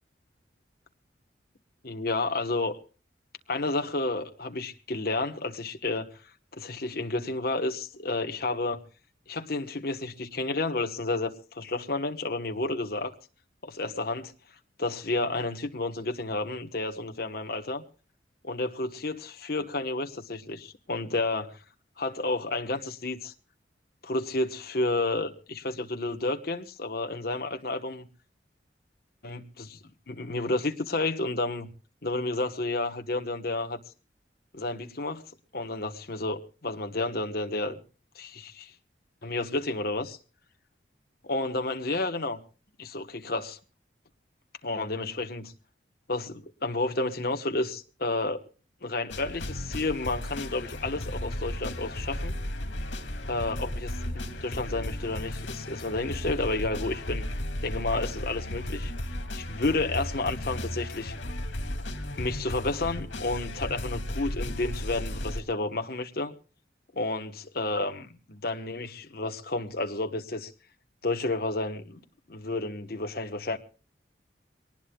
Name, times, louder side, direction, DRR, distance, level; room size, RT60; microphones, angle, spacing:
voice 1, 1.8-2.8 3.5-6.1 6.5-8.8 9.3-13.1 13.6-14.3 14.8-17.8 18.4-21.6 22.0-23.3 24.0-28.1 29.2-29.8 30.1-31.7 32.0-33.8 34.5-35.2 35.5-37.8 38.1-38.7 39.2-40.2 41.2-42.4 42.8-43.6 44.6-45.5 46.1-48.4 48.8-52.3 53.3-57.3 57.6-58.9 59.3-61.1 62.2-66.3 66.9-70.5 71.0-72.0 72.3-73.6, left 2 dB, 55° left, 1.2 m, -31 dB
sound 1, 49.1-65.4, left 1 dB, 85° left, 2.3 m, -35 dB
23.0 x 19.0 x 2.3 m
head